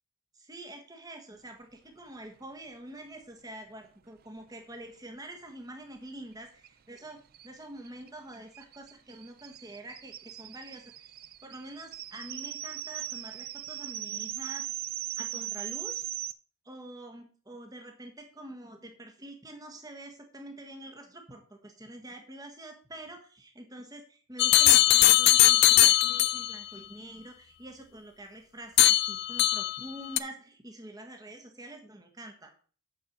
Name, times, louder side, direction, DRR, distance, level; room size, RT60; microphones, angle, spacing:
voice 1, 0.3-11.1 11.4-14.7 15.2-16.0 16.6-32.5, right 1 dB, 15° right, 3 dB, 1.6 m, -46 dB
sound 1, 6.6-6.7 7.0-7.1 7.3-16.3, right 12 dB, 45° right, 0.4 m, -39 dB
sound 2, 24.4-26.5 28.8-29.8 30.2-30.3, left 14 dB, 50° left, 0.4 m, -20 dB
8.8 x 4.8 x 6.1 m, 0.41 s
head